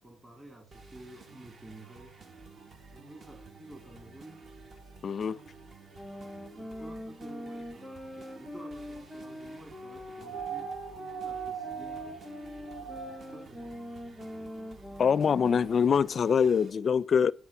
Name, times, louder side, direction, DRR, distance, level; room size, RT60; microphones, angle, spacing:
voice 1, 0.0-2.1 2.9-4.4 6.5-10.7 11.2-12.2 12.8-13.8, right 1 dB, 20° right, 2.2 m, -51 dB
sound 1, 0.7-16.7, right 4 dB, 45° right, 1.2 m, -52 dB
voice 2, 5.0-5.4 15.0-17.3, left 6 dB, 50° left, 0.4 m, -24 dB
sound 2, 5.9-15.9, left 1 dB, ahead, 1.0 m, -43 dB
sound 3, 10.2-13.4 14.9-15.0, right 8 dB, 80° right, 3.1 m, -39 dB
8.4 x 4.8 x 7.0 m
cardioid pair, 90°, 0 cm